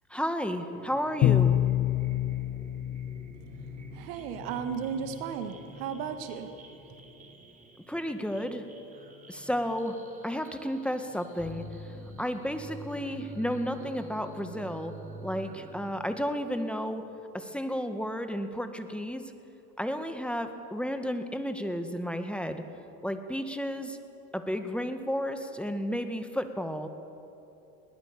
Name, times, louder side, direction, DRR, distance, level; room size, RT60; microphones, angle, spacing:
voice 1, 0.1-1.6 7.9-8.6 9.3-10.0 10.2-11.6 12.2-14.9 15.2-17.0 17.3-19.2 19.8-22.6 23.0-24.0 24.3-26.9, equal, ahead, 7 dB, 1.8 m, -32 dB
sound 1, 0.7-15.9, right 2 dB, 15° right, 2.8 m, -48 dB
Bowed string instrument, 1.2-4.0, left 12 dB, 40° left, 0.5 m, -26 dB
voice 2, 3.9-6.6, right 7 dB, 70° right, 8 dB, 1.8 m, -35 dB
21.0 x 19.0 x 6.9 m, 2.9 s
hypercardioid pair, 80°, 45 cm